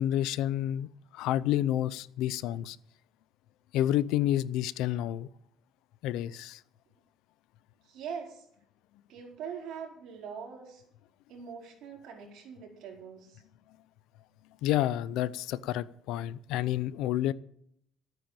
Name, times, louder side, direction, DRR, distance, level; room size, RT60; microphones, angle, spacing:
voice 1, 0.0-2.8 3.7-5.3 6.0-6.6 14.6-17.3, left 12 dB, 80° left, 18 dB, 0.6 m, -29 dB
voice 2, 7.9-8.4 9.1-10.8 11.3-13.4, right 7 dB, 65° right, 0 dB, 4.6 m, -42 dB
13.5 x 9.1 x 7.2 m, 0.68 s
cardioid pair, 155°, 0 cm